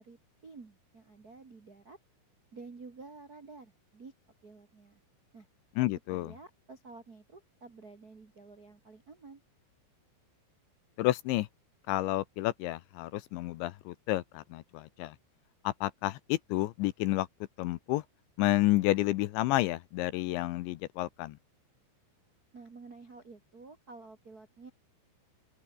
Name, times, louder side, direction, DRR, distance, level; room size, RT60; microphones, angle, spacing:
voice 1, 0.0-2.0 2.5-4.1 4.4-5.0 5.3-5.5 6.1-9.4 22.5-24.7, right 3 dB, 50° right, 1.0 m, -51 dB
voice 2, 5.8-6.3 11.0-11.5 11.9-15.2 15.6-17.3 17.6-18.0 18.4-21.4, left 17 dB, 75° left, 2.9 m, -30 dB
open air
omnidirectional pair, 5.7 m